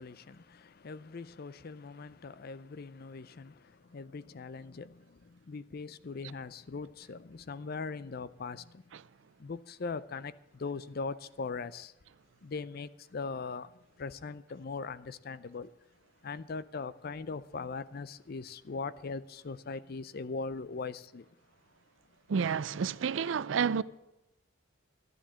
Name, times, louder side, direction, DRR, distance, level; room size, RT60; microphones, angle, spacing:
voice 1, 0.0-8.8 9.4-11.9 12.4-15.7 16.2-21.3, left 4 dB, 50° left, 0.5 m, -40 dB
voice 2, 22.3-23.8, right 6 dB, 65° right, 0.4 m, -29 dB
12.5 x 10.5 x 6.3 m
head